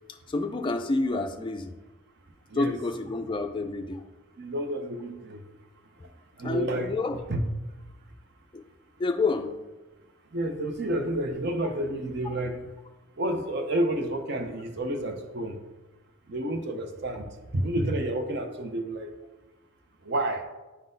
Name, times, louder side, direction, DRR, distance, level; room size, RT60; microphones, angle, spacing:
voice 1, 0.1-1.7 2.5-4.0 6.0-6.1 6.4-7.2 8.5-8.6 9.0-9.6, left 3 dB, 20° left, 4 dB, 0.3 m, -29 dB
voice 2, 4.4-5.4 6.4-6.9 7.3-7.5 10.3-12.7 13.2-15.6 16.3-17.3 17.5-19.1 20.0-20.4, right 1 dB, 50° right, 5 dB, 0.6 m, -30 dB
9.7 x 3.8 x 2.6 m, 1.1 s
head